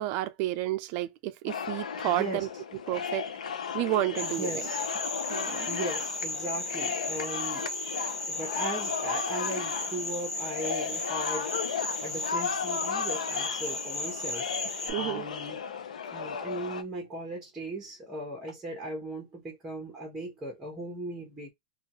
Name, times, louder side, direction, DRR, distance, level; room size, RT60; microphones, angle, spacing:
voice 1, 0.0-2.5 2.9-3.2 3.7-4.7 5.3-5.7 14.9-15.2, right 14 dB, 50° right, 0.4 m, -31 dB
sound 1, 1.5-16.8, left 6 dB, 90° left, 0.5 m, -35 dB
voice 2, 2.1-2.5 4.2-4.9 5.7-7.7 8.3-14.4 15.0-15.6 16.1-21.5, right 1 dB, 10° right, 1.1 m, -38 dB
sound 2, 4.2-14.9, left 2 dB, 15° left, 0.8 m, -35 dB
2.6 x 2.4 x 2.9 m
hypercardioid pair, 120°, 4 cm